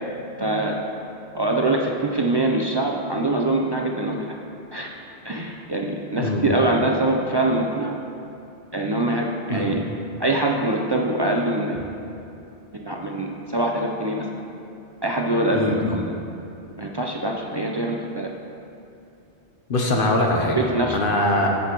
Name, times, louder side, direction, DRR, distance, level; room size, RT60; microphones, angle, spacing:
voice 1, 0.4-0.8 1.3-4.4 4.7-4.9 5.2-7.9 8.7-9.8 10.2-11.8 12.7-14.3 15.0-16.0 16.8-18.3 20.5-21.3, right 2 dB, 45° right, 0 dB, 0.3 m, -24 dB
voice 2, 15.5-16.0 19.7-20.6 20.9-21.5, left 1 dB, 55° left, 0 dB, 1.0 m, -22 dB
14.0 x 5.4 x 3.0 m, 2.7 s
omnidirectional pair, 1.1 m